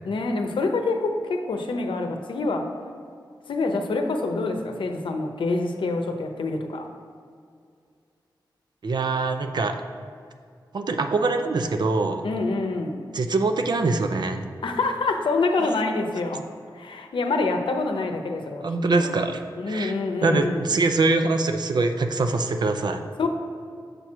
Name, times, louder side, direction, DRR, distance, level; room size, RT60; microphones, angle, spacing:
voice 1, 0.0-2.7 3.5-6.9 12.2-13.1 14.6-16.4 16.7-18.6 18.9-19.2 19.6-20.6 23.2-23.3, left 3 dB, 85° left, 4 dB, 0.7 m, -26 dB
voice 2, 8.8-9.8 10.7-12.2 13.1-14.5 18.6-19.4 19.7-19.9 20.2-23.0, right 3 dB, 60° right, 7 dB, 0.5 m, -23 dB
6.7 x 4.5 x 6.0 m, 2.3 s
wide cardioid pair, 125°, 8 cm